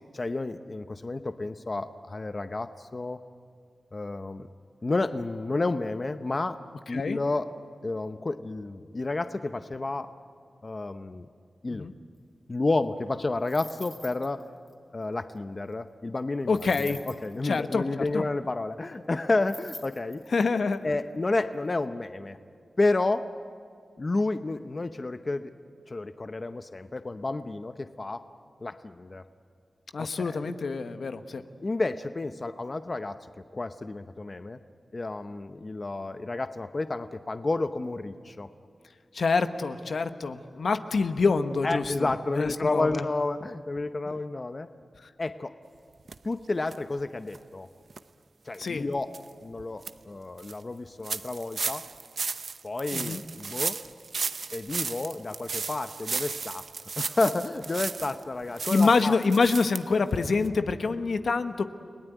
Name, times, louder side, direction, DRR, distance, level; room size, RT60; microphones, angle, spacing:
voice 1, 0.1-3.2 3.9-4.5 4.8-6.6 6.9-7.5 7.8-10.1 10.6-11.3 11.6-11.9 12.5-14.4 14.9-16.9 17.2-20.2 20.8-22.4 22.8-23.2 24.0-25.5 25.9-28.2 28.6-29.2 30.0-30.5 31.6-33.2 33.5-34.6 34.9-38.5 41.6-44.7 45.2-45.5 46.2-47.7 48.5-49.1 49.4-51.8 52.6-53.8 54.5-56.6 57.0-59.2, left 2 dB, 40° left, 9 dB, 0.8 m, -30 dB
sound 1, 13.4-14.4 14.7-14.8 16.5-17.5 19.4-20.7, left 1 dB, 15° left, 3.4 m, -45 dB
voice 2, 16.5-17.0 17.4-17.9 18.1-18.2 20.3-20.8 29.9-31.4 39.1-43.0 45.0-45.1 48.6-48.8 52.9-53.2 58.7-61.6, left 4 dB, 70° left, 9 dB, 1.1 m, -26 dB
sound 2, 46.1-46.2 46.7-46.8 47.3-47.4 47.9-48.0 48.5-48.7 49.1-49.2 49.6-49.9 50.4-50.5 51.0-58.2 58.6-59.8 60.1-60.2 60.4-60.5, right 4 dB, 70° right, 0.8 m, -34 dB
30.0 x 18.5 x 9.4 m, 2.3 s
wide cardioid pair, 80°, 0 cm